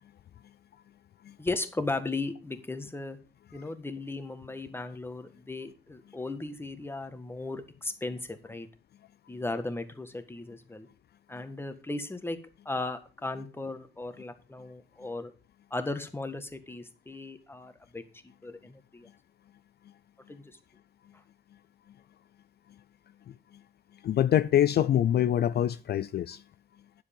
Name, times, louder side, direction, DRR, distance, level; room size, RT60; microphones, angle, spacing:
voice 1, 1.4-3.2 3.5-8.7 9.3-10.9 11.3-12.4 12.6-15.3 15.7-18.0 18.4-19.1 20.3-20.5, left 2 dB, 10° left, 1.6 m, -36 dB
voice 2, 24.0-26.4, left 11 dB, 55° left, 0.5 m, -24 dB
9.6 x 7.6 x 5.3 m
cardioid pair, 90°, 20 cm